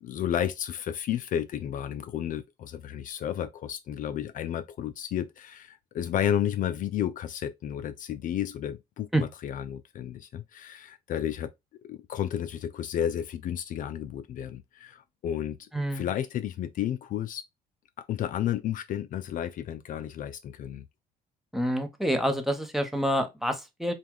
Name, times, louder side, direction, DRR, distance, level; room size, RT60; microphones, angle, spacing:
voice 1, 0.0-11.5 11.9-17.4 18.0-20.8, left 10 dB, 50° left, 0.4 m, -32 dB
voice 2, 15.7-16.1 21.5-23.9, equal, ahead, 0.8 m, -27 dB
4.6 x 2.3 x 3.5 m
cardioid pair, 110°, 17 cm